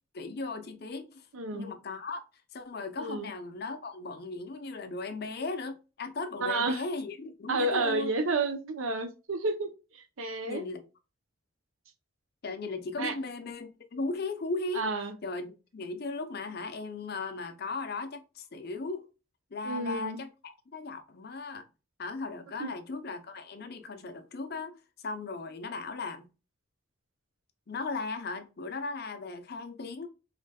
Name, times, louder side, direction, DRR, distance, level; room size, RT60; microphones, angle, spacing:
voice 1, 0.1-1.3 1.5-2.2 2.5-8.1 10.4-10.8 12.4-14.9 15.2-19.0 19.5-21.7 22.0-24.7 25.0-26.3 27.7-30.1, left 3 dB, 50° left, 0.6 m, -37 dB
voice 2, 1.3-1.7 3.0-3.3 6.4-6.8 7.5-10.7 13.0-13.1 14.7-15.1 19.6-20.2 22.6-22.7, right 2 dB, 80° right, 0.7 m, -31 dB
5.0 x 3.2 x 2.2 m
head